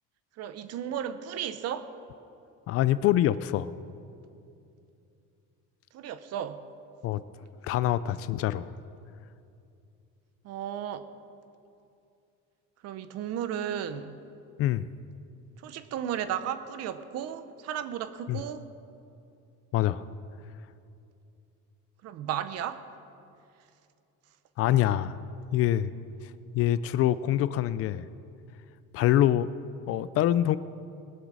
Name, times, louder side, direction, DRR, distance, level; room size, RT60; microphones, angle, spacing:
voice 1, 0.4-1.9 5.9-6.6 10.4-11.0 12.8-14.2 15.6-18.7 22.0-22.8, right 9 dB, 55° right, 12 dB, 0.9 m, -34 dB
voice 2, 2.7-3.7 7.0-7.2 7.6-8.7 14.6-14.9 18.3-18.4 19.7-20.0 24.6-25.2 25.5-25.9 26.5-28.1 28.9-29.5 29.9-30.6, left 12 dB, 50° left, 16 dB, 0.4 m, -25 dB
21.0 x 8.0 x 6.3 m, 2.6 s
cardioid pair, 155°, 31 cm